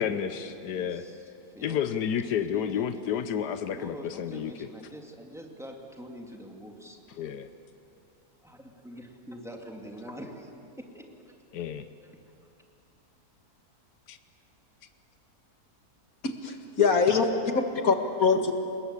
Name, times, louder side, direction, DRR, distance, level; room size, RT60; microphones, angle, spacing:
voice 1, 0.0-1.0 1.6-4.5 7.2-7.5 11.5-11.8 14.1-14.2, left 8 dB, 90° left, 10 dB, 1.4 m, -30 dB
voice 2, 0.7-1.8 2.3-3.3 3.6-7.0 8.4-11.4 12.0-12.2, equal, ahead, 1 dB, 2.7 m, -45 dB
voice 3, 16.2-18.5, left 5 dB, 60° left, 5 dB, 2.1 m, -24 dB
29.5 x 20.5 x 8.4 m, 2.6 s
omnidirectional pair, 1.7 m